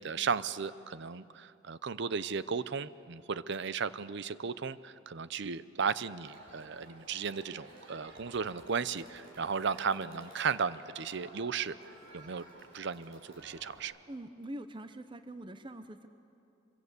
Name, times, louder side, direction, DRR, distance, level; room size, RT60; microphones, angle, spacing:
voice 1, 0.0-11.8 12.1-12.5 12.7-13.9, right 6 dB, 60° right, 16 dB, 0.6 m, -35 dB
Crowd, 6.2-13.8, right 1 dB, 75° right, 6.1 m, -53 dB
voice 2, 14.1-16.1, right 1 dB, 25° right, 10 dB, 0.7 m, -44 dB
25.5 x 23.0 x 8.2 m, 2.8 s
head